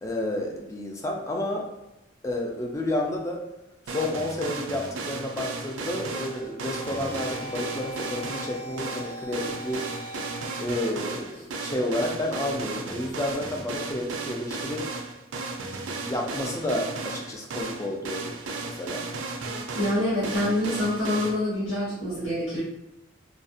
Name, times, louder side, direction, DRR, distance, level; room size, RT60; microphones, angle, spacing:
voice 1, 0.0-1.7 2.2-3.4 3.9-9.8 10.6-14.8 16.0-18.3 18.6-19.0, left 1 dB, 15° left, 0 dB, 0.3 m, -30 dB
sound 1, 3.9-21.3, right 3 dB, 70° right, 0.4 m, -35 dB
sound 2, 6.0-11.1, equal, 40° left, 1.1 m, -41 dB
voice 2, 19.7-22.6, left 1 dB, 70° left, -11 dB, 1.1 m, -26 dB
2.4 x 2.0 x 2.6 m, 0.92 s
head